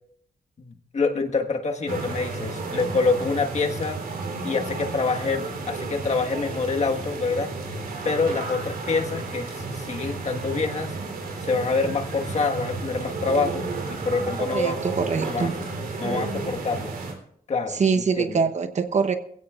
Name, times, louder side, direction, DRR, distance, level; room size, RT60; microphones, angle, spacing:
voice 1, 0.6-4.0 4.4-7.5 8.0-10.9 11.4-14.8 15.3-15.5 16.0-16.9 17.5-17.8 18.2-18.4, left 4 dB, 45° left, 3 dB, 1.6 m, -26 dB
sound 1, 1.9-17.1, right 3 dB, 75° right, 3.7 m, -32 dB
voice 2, 14.4-15.6 17.7-19.1, right 5 dB, 50° right, 7 dB, 1.0 m, -24 dB
21.5 x 16.0 x 2.5 m, 0.68 s
wide cardioid pair, 115°, 16 cm